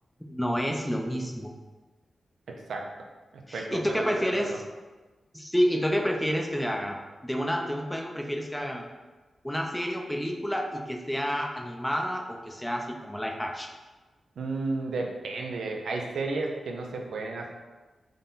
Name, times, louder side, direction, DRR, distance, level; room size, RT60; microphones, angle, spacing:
voice 1, 0.2-1.5 3.5-4.6 5.3-8.8 9.4-13.7, equal, 5° left, 1 dB, 0.5 m, -29 dB
voice 2, 2.5-2.8 3.5-4.6 14.4-17.5, right 3 dB, 85° right, 1 dB, 0.4 m, -33 dB
3.7 x 2.2 x 3.9 m, 1.2 s
cardioid pair, 80°, 0 cm